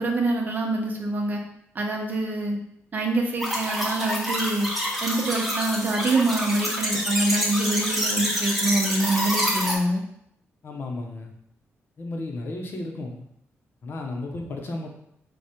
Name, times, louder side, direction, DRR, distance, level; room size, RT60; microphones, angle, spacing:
voice 1, 0.0-1.4 1.7-2.6 2.9-4.7 5.0-10.0, right 2 dB, 35° right, 1 dB, 0.8 m, -25 dB
sound 1, 3.4-9.7, equal, ahead, 0.9 m, -27 dB
voice 2, 10.6-11.3 12.0-13.2 13.8-14.9, left 2 dB, 50° left, 2 dB, 0.8 m, -33 dB
4.9 x 2.3 x 4.3 m, 0.74 s
wide cardioid pair, 145°, 5 cm